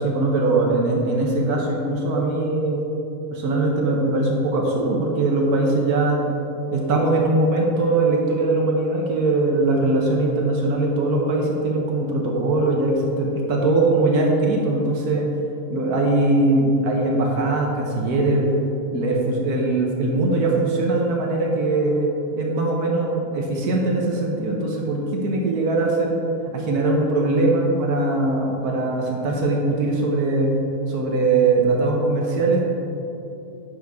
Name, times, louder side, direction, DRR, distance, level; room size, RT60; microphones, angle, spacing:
voice 1, 0.0-2.9 3.3-6.2 6.7-15.3 15.7-18.6 18.9-22.1 22.3-26.2 26.5-30.5 30.9-32.6, right 2 dB, 80° right, -1 dB, 1.5 m, -21 dB
9.4 x 6.3 x 3.5 m, 2.9 s
omnidirectional pair, 1.6 m